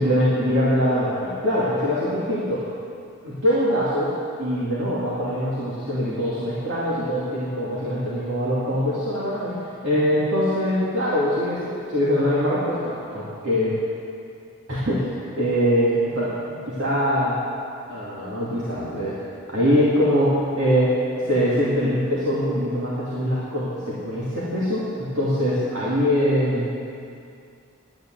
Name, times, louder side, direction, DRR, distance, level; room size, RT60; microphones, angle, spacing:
voice 1, 0.0-2.6 3.2-4.1 4.4-13.7 14.7-16.3 16.7-17.4 17.9-19.1 19.5-20.9 21.2-26.7, equal, 60° right, -9 dB, 2.6 m, -23 dB
11.5 x 9.5 x 7.9 m, 2.4 s
head